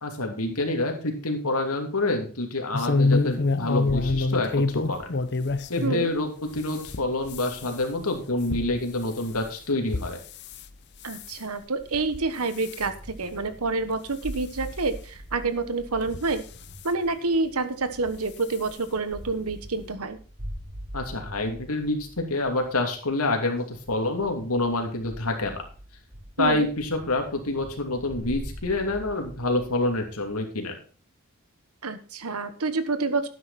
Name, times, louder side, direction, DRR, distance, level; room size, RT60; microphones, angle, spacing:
voice 1, 0.0-5.1 5.7-10.2 20.9-22.0 22.3-25.6 26.4-30.7, left 2 dB, 85° left, 3 dB, 2.8 m, -27 dB
sound 1, 2.7-6.1 6.5-10.6 11.0-11.4 11.9-12.3 12.6-12.9 13.5-13.6 13.9-14.0 15.2-15.3 16.0-16.8 18.0-18.2 18.5-18.6 19.0-19.1, left 3 dB, 50° left, 0.7 m, -27 dB
voice 2, 11.0-16.4 16.8-20.2 26.4-26.7 31.8-33.3, right 3 dB, 90° right, 11 dB, 1.3 m, -28 dB
sound 2, 12.8-30.3, equal, 70° right, 7.6 m, -43 dB
12.0 x 9.5 x 4.2 m, 0.38 s
head